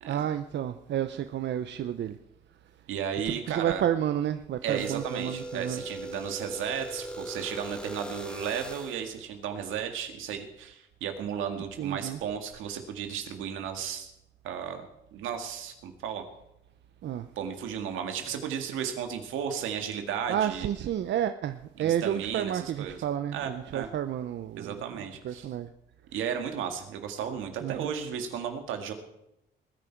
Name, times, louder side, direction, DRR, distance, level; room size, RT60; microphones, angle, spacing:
voice 1, 0.1-2.2 3.2-5.8 11.8-12.2 17.0-17.3 20.3-24.8 25.2-25.7 27.6-27.9, right 10 dB, 65° right, 0.7 m, -31 dB
voice 2, 2.9-3.8 4.6-14.1 14.4-16.2 17.4-20.7 21.8-23.0 23.3-23.9 24.6-25.5 26.1-28.9, right 8 dB, 90° right, 1.9 m, -34 dB
sound 1, 4.7-9.1, right 1 dB, 5° left, 2.4 m, -39 dB
20.5 x 9.8 x 4.6 m
cardioid pair, 90°, 20 cm